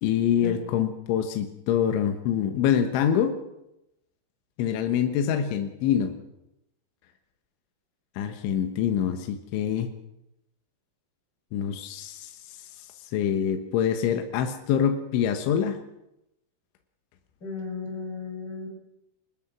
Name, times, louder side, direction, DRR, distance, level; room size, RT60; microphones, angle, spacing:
voice 1, 0.0-3.4 4.6-6.1 8.2-9.9 11.5-12.9 13.1-15.8, left 9 dB, 80° left, 5 dB, 3.7 m, -25 dB
voice 2, 17.4-18.7, left 4 dB, 20° left, 0 dB, 7.4 m, -35 dB
24.5 x 20.0 x 6.1 m, 0.87 s
omnidirectional pair, 5.4 m